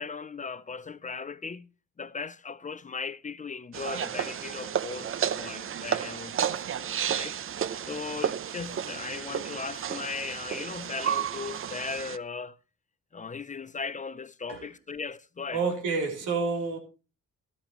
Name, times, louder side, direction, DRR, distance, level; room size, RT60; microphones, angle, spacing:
voice 1, 0.0-1.7 2.0-7.4 7.8-12.6 13.1-15.6, left 5 dB, 25° left, 0.6 m, -38 dB
sound 1, 3.7-12.2, right 9 dB, 45° right, 0.7 m, -32 dB
voice 2, 15.5-16.8, right 4 dB, 90° right, 3.6 m, -28 dB
13.5 x 12.5 x 3.1 m
cardioid pair, 90°, 30 cm